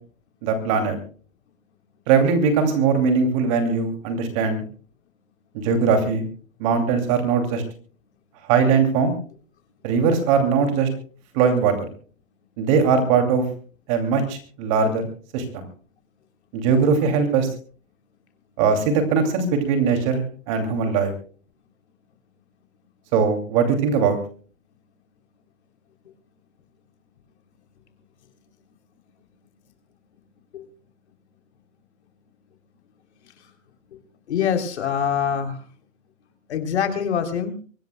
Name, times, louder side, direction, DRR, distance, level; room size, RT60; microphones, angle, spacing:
voice 1, 0.4-1.0 2.1-4.6 5.5-6.2 6.6-7.6 8.5-9.1 9.8-10.9 11.3-11.7 12.6-13.5 13.9-15.0 15.3-15.6 16.5-17.5 18.6-21.1 23.1-24.2, right 5 dB, 25° right, 6 dB, 2.6 m, -20 dB
voice 2, 34.3-35.6 36.5-37.6, left 8 dB, 55° left, 5 dB, 3.3 m, -24 dB
24.0 x 18.5 x 2.2 m, 0.40 s
hypercardioid pair, 170°, 39 cm